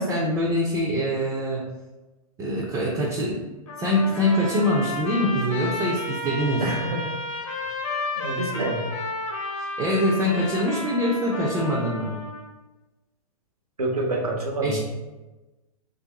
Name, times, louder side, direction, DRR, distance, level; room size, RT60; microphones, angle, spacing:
voice 1, 0.0-1.7 2.4-3.4 3.8-6.6 9.8-12.1 14.6-14.8, equal, 15° right, -3 dB, 0.4 m, -24 dB
Trumpet, 3.7-12.5, left 2 dB, 55° left, 0.8 m, -32 dB
voice 2, 6.6-7.0 8.2-8.8 13.8-14.8, right 2 dB, 90° right, 0 dB, 0.8 m, -27 dB
3.2 x 2.6 x 2.9 m, 1.1 s
figure-of-eight pair, 115°, 19 cm